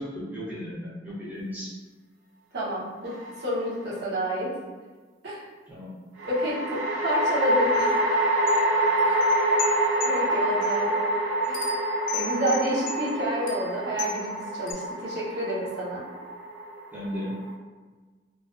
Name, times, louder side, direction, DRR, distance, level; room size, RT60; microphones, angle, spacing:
voice 1, 0.0-1.7 5.7-5.9 16.9-17.4, equal, 10° right, -8 dB, 0.5 m, -35 dB
voice 2, 2.5-4.5 5.2-5.5 6.2-7.9 9.1-9.2 10.0-11.0 11.5-11.7 12.1-16.0, equal, 60° right, -8 dB, 0.7 m, -29 dB
sound 1, 3.1-3.8 6.2-17.5, right 1 dB, 85° right, 0.4 m, -26 dB
sound 2, 7.7-7.9 8.5-10.8 11.4-14.3 14.7-14.8, left 7 dB, 50° left, 0.3 m, -37 dB
2.4 x 2.2 x 2.3 m, 1.4 s
head